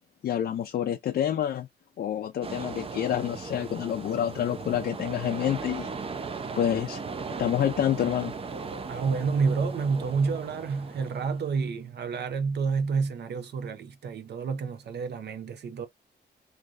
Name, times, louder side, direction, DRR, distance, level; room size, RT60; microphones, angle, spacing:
voice 1, 0.2-1.7 2.0-5.9 6.6-7.0 7.4-8.3, left 10 dB, 60° left, 0.4 m, -28 dB
sound 1, 2.4-11.6, right 4 dB, 30° right, 0.5 m, -37 dB
voice 2, 8.9-15.9, right 5 dB, 65° right, 0.7 m, -29 dB
3.2 x 2.6 x 2.4 m
wide cardioid pair, 170°, 18 cm